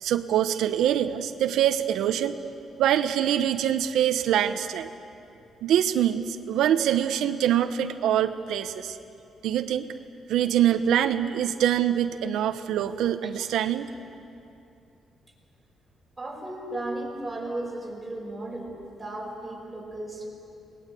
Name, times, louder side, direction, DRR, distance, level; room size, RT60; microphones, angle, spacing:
voice 1, 0.0-2.4 2.8-4.9 5.6-9.0 9.4-9.9 10.3-13.9, right 10 dB, 90° right, 8 dB, 0.9 m, -24 dB
voice 2, 16.2-20.3, right 1 dB, 5° right, -3 dB, 5.1 m, -35 dB
29.0 x 19.5 x 8.4 m, 2.7 s
cardioid pair, 175°, 0 cm